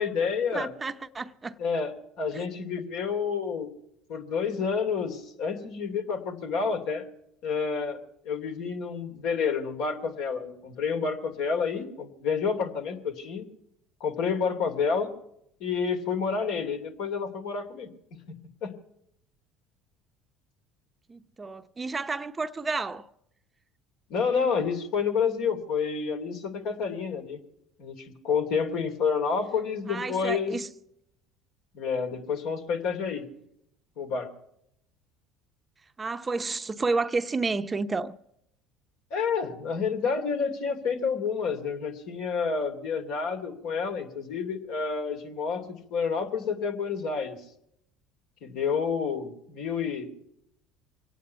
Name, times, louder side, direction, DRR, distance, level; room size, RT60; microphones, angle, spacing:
voice 1, 0.0-0.7 1.6-3.7 4.1-7.0 7.4-8.0 8.2-13.4 14.0-15.1 15.6-17.9 18.6-18.7 24.1-27.4 27.8-30.5 31.7-33.2 34.0-34.3 39.1-47.4 48.4-50.1, left 5 dB, 70° left, 2.7 m, -29 dB
voice 2, 0.5-1.6 2.3-2.4 21.1-23.1 29.9-30.7 36.0-38.1, right 3 dB, 25° right, 0.7 m, -31 dB
24.5 x 9.2 x 5.7 m
hypercardioid pair, 70°, 0 cm